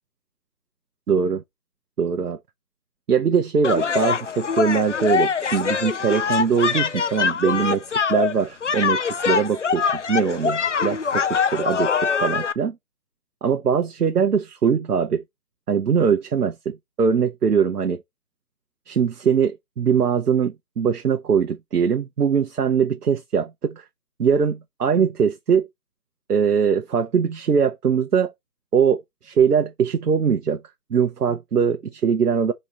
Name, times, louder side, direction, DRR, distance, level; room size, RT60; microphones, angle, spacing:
voice 1, 1.1-1.4 2.0-2.4 3.1-7.8 8.1-12.8 13.4-15.2 15.7-18.0 18.9-23.8 24.2-25.7 26.3-28.3 28.7-30.6 30.9-32.5, right 6 dB, 80° right, 0.9 m, -21 dB
sound 1, 3.6-12.5, left 6 dB, 50° left, 0.5 m, -23 dB
3.9 x 3.2 x 4.1 m
figure-of-eight pair, 165°, 46 cm